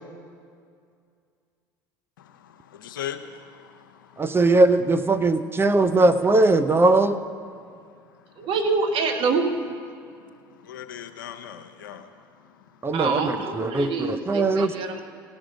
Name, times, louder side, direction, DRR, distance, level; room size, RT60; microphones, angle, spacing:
voice 1, 2.4-3.6 10.6-12.1, left 9 dB, 85° left, 7 dB, 0.7 m, -37 dB
voice 2, 4.2-7.2 12.8-14.7, right 2 dB, 20° right, 10 dB, 0.6 m, -20 dB
voice 3, 8.4-9.5 12.9-15.0, right 4 dB, 55° right, 5 dB, 1.1 m, -26 dB
18.5 x 6.2 x 5.1 m, 2.3 s
hypercardioid pair, 75°, 11 cm